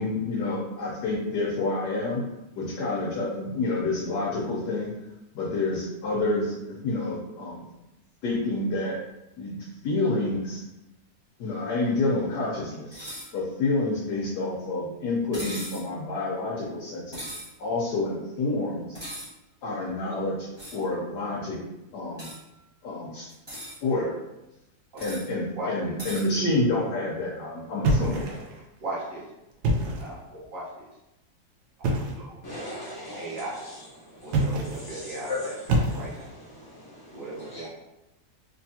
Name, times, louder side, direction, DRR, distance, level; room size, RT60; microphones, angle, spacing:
voice 1, 0.0-2.2 2.5-4.9 5.3-7.6 8.2-9.0 9.4-10.6 11.4-17.2 17.6-19.0 19.6-21.6 21.9-22.3 22.8-23.3 23.8-24.2 25.0-28.2, left 2 dB, 75° left, -5 dB, 1.4 m, -28 dB
sound 1, 12.9-13.3 15.3-15.9 17.1-17.5 18.9-19.3 20.6-20.8 22.2-22.4 23.3-23.8 25.0-25.3 26.0-26.3, equal, 15° right, 1.3 m, -38 dB
voice 2, 25.5-26.0 28.0-28.3 28.8-29.2 30.0-30.9 31.8-32.4 32.6-33.8 34.2-36.3 37.1-37.7, right 1 dB, 55° right, -6 dB, 1.4 m, -38 dB
sound 2, 27.8-28.6 29.5-30.2 31.8-32.3 34.2-34.9 35.7-36.4, right 1 dB, 85° right, 1.3 m, -26 dB
voice 3, 32.4-33.4 34.0-35.4 36.5-37.7, left 2 dB, 35° left, -7 dB, 0.3 m, -39 dB
3.4 x 3.4 x 2.7 m, 0.94 s
omnidirectional pair, 1.8 m